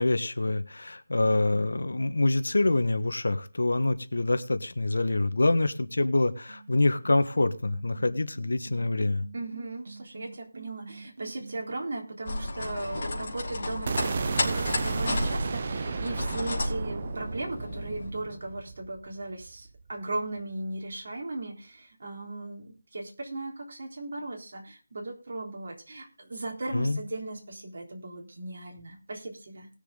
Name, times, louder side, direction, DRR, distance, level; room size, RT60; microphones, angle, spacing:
voice 1, 0.0-9.2 26.7-27.0, left 2 dB, 85° left, 10 dB, 1.3 m, -26 dB
sound 1, 5.8-11.8, right 3 dB, 70° right, 2.7 m, -47 dB
voice 2, 9.3-29.7, right 2 dB, 55° right, 1 dB, 3.5 m, -37 dB
sound 2, 12.2-18.1, left 2 dB, 40° left, 3.2 m, -33 dB
sound 3, 13.9-19.9, right 5 dB, 35° right, 0.6 m, -33 dB
19.0 x 6.8 x 3.9 m, 0.36 s
figure-of-eight pair, 175°, 0 cm